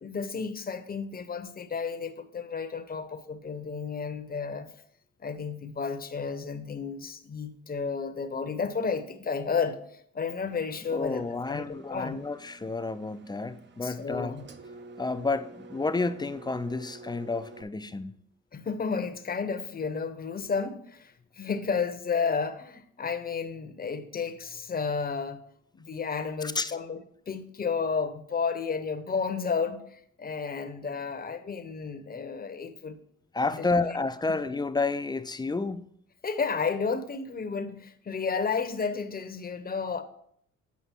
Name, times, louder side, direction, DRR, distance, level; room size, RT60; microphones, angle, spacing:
voice 1, 0.0-4.7 5.2-11.2 11.5-12.2 13.8-14.4 18.5-25.4 25.7-32.9 33.5-33.7 34.3-34.4 36.2-40.0, left 5 dB, 30° left, 0.8 m, -32 dB
Engine, 10.5-17.6, right 3 dB, 35° right, 0.6 m, -49 dB
voice 2, 10.9-14.3 15.0-18.1 26.4-26.7 33.3-35.8, left 3 dB, 15° left, 0.4 m, -30 dB
8.3 x 5.0 x 4.4 m
cardioid pair, 90°, 30 cm